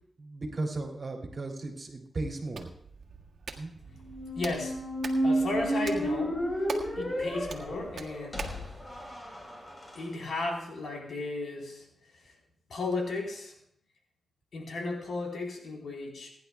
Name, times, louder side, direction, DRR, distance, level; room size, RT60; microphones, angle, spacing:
voice 1, 0.2-2.7 3.6-3.7, right 2 dB, 45° right, 1 dB, 2.7 m, -35 dB
Hands, 2.2-8.7, right 5 dB, 75° right, 1.6 m, -44 dB
Squeak, 4.0-10.0, right 1 dB, 20° left, 4.0 m, -32 dB
voice 2, 4.4-4.8 5.2-6.4 7.0-8.6 9.9-11.9 12.7-13.5 14.5-16.3, left 2 dB, 70° left, 0 dB, 4.0 m, -34 dB
28.0 x 10.5 x 2.3 m, 0.71 s
cardioid pair, 80°, 0 cm